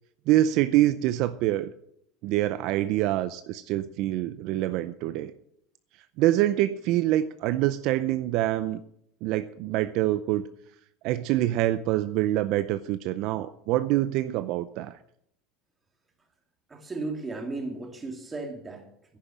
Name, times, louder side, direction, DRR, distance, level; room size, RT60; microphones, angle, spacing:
voice 1, 0.3-1.7 2.2-5.3 6.2-8.8 9.2-10.5 11.0-15.0, right 14 dB, 60° right, 13 dB, 0.6 m, -25 dB
voice 2, 16.7-19.2, right 3 dB, 15° right, 4 dB, 2.5 m, -35 dB
10.5 x 10.5 x 7.3 m, 0.73 s
supercardioid pair, 135°, 0 cm